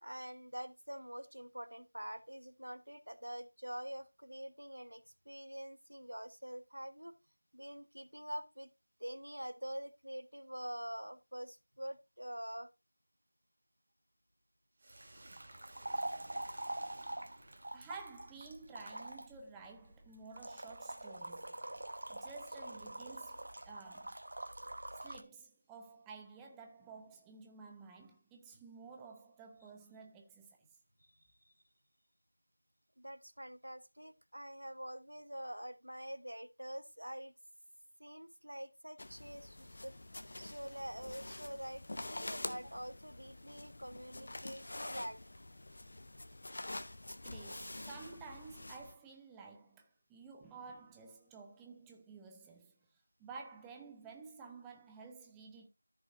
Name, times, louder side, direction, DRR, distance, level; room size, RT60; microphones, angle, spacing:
voice 1, 0.0-7.1 7.5-8.7 9.0-12.7 15.7-15.8 31.4-31.5 33.0-37.3 38.0-39.9 40.4-45.2, equal, 80° right, 1.1 m, -46 dB
sound 1, 14.8-18.2, right 1 dB, 20° right, 2.4 m, -57 dB
sound 2, 14.9-25.2, right 1 dB, 50° right, 1.1 m, -45 dB
voice 2, 17.7-21.7 22.1-24.2 24.9-30.6 47.2-52.7 53.2-55.7, right 4 dB, 5° right, 0.4 m, -52 dB
sound 3, 39.0-48.9, left 2 dB, 40° left, 0.7 m, -46 dB
14.0 x 5.6 x 2.6 m
figure-of-eight pair, 170°, 0 cm